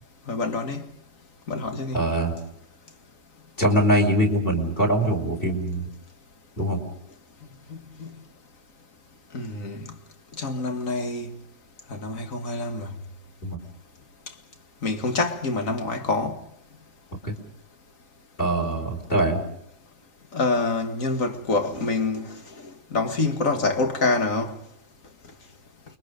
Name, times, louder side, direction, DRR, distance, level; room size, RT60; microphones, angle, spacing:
voice 1, 0.3-0.8 1.5-2.0 7.7-8.1 9.3-9.9 10.4-11.3 11.9-12.9 14.8-16.4 20.3-22.3 22.9-24.5, left 3 dB, 50° left, 2.3 m, -26 dB
voice 2, 1.9-2.4 3.6-5.8 6.6-6.8 13.4-13.6 17.2-17.3 18.4-19.4, right 1 dB, 30° left, 5.0 m, -23 dB
29.0 x 23.0 x 5.2 m
omnidirectional pair, 1.8 m